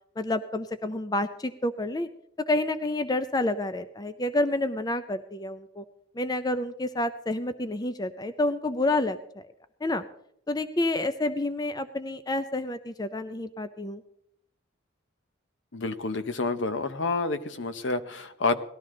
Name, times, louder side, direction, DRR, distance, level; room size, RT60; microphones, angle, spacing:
voice 1, 0.2-2.1 2.5-5.8 6.2-9.5 9.8-10.0 10.5-14.0, left 2 dB, 20° left, 11 dB, 0.5 m, -29 dB
voice 2, 15.7-18.6, left 3 dB, 65° left, 11 dB, 0.9 m, -29 dB
18.5 x 13.0 x 3.8 m, 0.73 s
head